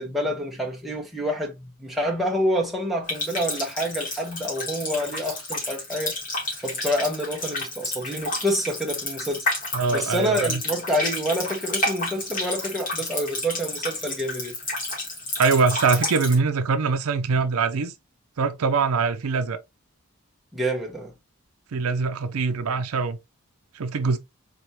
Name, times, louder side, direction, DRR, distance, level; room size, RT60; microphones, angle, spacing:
voice 1, 0.0-6.1 6.6-9.5 9.9-14.5 20.5-21.1, equal, ahead, 0.9 m, -27 dB
Water tap faucet, 3.1-16.4, left 2 dB, 35° left, 2.0 m, -30 dB
voice 2, 9.7-10.6 15.4-17.9 18.4-19.6 21.7-23.2 23.7-24.2, right 4 dB, 75° right, 0.5 m, -23 dB
4.0 x 3.4 x 2.9 m
head